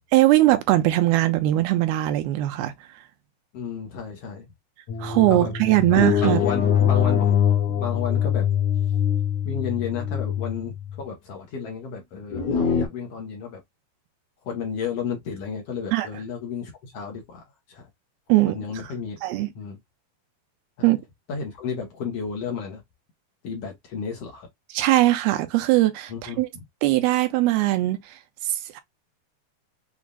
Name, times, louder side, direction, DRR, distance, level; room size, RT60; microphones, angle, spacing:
voice 1, 0.1-2.7 5.0-6.4 15.9-16.1 18.3-18.9 19.2-19.5 20.8-21.0 24.7-26.5 26.8-28.8, right 16 dB, 80° right, 2.5 m, -21 dB
voice 2, 3.5-4.5 5.3-5.5 5.9-7.4 7.7-8.5 9.4-13.6 14.4-17.9 18.5-19.2 19.5-19.8 20.8-20.9 21.3-22.8 23.4-24.5 26.1-26.4, left 6 dB, 80° left, 1.4 m, -32 dB
sound 1, 4.9-11.0 12.3-12.9, left 8 dB, 65° left, 1.9 m, -23 dB
7.2 x 2.5 x 2.3 m
omnidirectional pair, 4.5 m